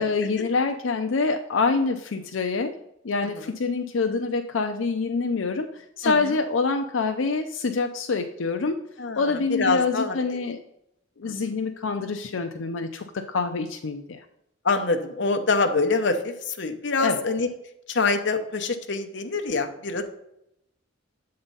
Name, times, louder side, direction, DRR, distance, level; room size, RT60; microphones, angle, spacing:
voice 1, 0.0-2.7 3.0-8.8 9.2-10.6 11.2-14.2 17.0-17.2, left 4 dB, 90° left, 5 dB, 0.5 m, -26 dB
voice 2, 6.0-6.4 9.0-10.2 11.2-11.3 14.6-17.5 17.9-20.0, left 3 dB, 65° left, 6 dB, 0.9 m, -25 dB
7.9 x 3.9 x 5.4 m, 0.81 s
head